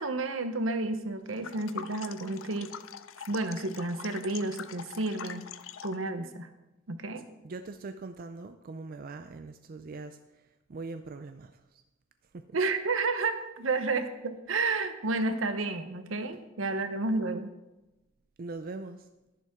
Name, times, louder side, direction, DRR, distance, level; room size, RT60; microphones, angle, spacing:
voice 1, 0.0-2.7 3.3-5.4 5.8-6.5 6.9-7.2 12.5-17.5, right 3 dB, 80° right, 9 dB, 0.9 m, -31 dB
sound 1, 1.3-6.1, left 8 dB, 75° left, 0.5 m, -44 dB
voice 2, 7.4-11.8 12.3-12.4 13.6-13.8 16.7-16.8 18.4-19.1, right 3 dB, 45° right, 8 dB, 0.4 m, -42 dB
11.0 x 11.0 x 3.7 m, 1.0 s
head